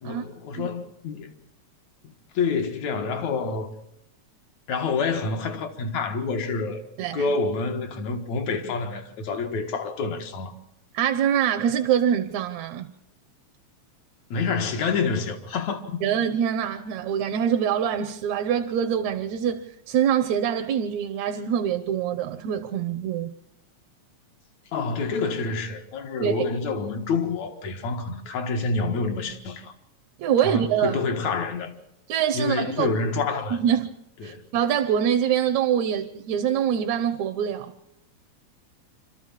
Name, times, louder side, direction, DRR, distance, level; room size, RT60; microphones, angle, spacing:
voice 1, 0.0-1.3 2.0-3.7 4.7-6.8 7.1-10.6 14.3-16.0 24.7-29.7 30.4-31.7 32.3-33.6 34.2-34.4, left 4 dB, 70° left, 2.9 m, -28 dB
voice 2, 10.9-12.9 16.0-23.3 26.2-26.3 30.2-31.0 32.1-32.9 33.5-33.9 34.2-37.7, right 9 dB, 75° right, 2.1 m, -24 dB
26.0 x 13.5 x 7.4 m
omnidirectional pair, 3.3 m